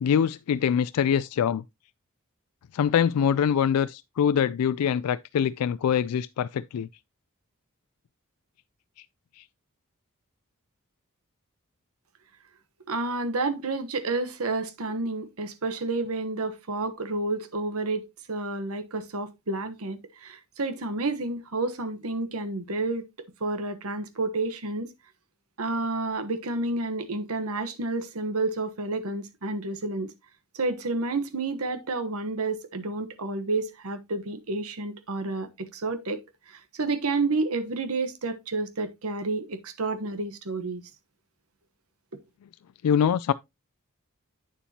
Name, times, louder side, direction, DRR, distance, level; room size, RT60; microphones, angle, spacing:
voice 1, 0.0-1.6 2.7-6.9 9.4-9.5 42.8-43.3, left 8 dB, 85° left, 0.3 m, -24 dB
voice 2, 12.9-23.0 23.4-24.9 25.6-30.1 30.5-36.2 36.5-40.8, right 3 dB, 75° right, 1.1 m, -30 dB
8.8 x 7.0 x 2.8 m
head